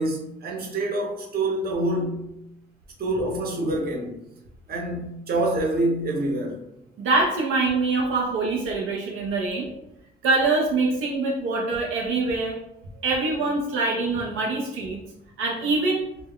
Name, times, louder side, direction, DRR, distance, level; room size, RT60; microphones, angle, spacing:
voice 1, 0.0-2.2 3.0-4.2 4.7-6.6, right 2 dB, 50° right, -1 dB, 0.8 m, -26 dB
voice 2, 7.0-9.7 10.2-12.6 13.0-15.0 15.4-16.0, right 3 dB, 90° right, -2 dB, 0.5 m, -24 dB
2.0 x 2.0 x 3.6 m, 0.85 s
cardioid pair, 90°, 20 cm